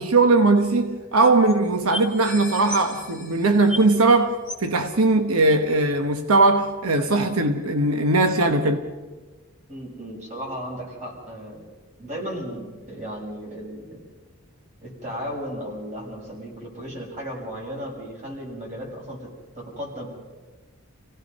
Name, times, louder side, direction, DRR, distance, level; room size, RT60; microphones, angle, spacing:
voice 1, 0.0-4.4 4.6-8.8, right 2 dB, 85° right, 1.1 m, -19 dB
sound 1, 0.6-0.7 0.9-1.0 1.5-1.6 1.9-4.1 4.5-4.7 5.5-5.6, left 1 dB, 10° right, 4.0 m, -35 dB
voice 2, 9.7-11.6 12.0-14.0 14.8-19.3 19.5-20.1, equal, 35° right, 6.2 m, -35 dB
28.5 x 17.0 x 5.4 m
head